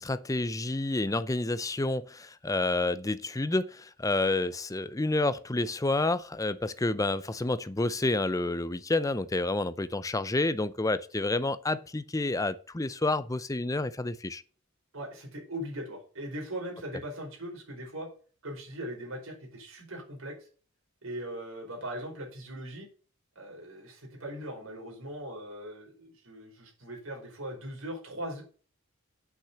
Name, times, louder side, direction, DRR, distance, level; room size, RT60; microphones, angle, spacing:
voice 1, 0.0-14.4, left 2 dB, 15° left, 0.5 m, -29 dB
voice 2, 14.9-18.1 18.4-20.3 21.0-22.9 23.4-28.4, right 1 dB, 75° right, 5.2 m, -40 dB
8.5 x 6.2 x 7.0 m
head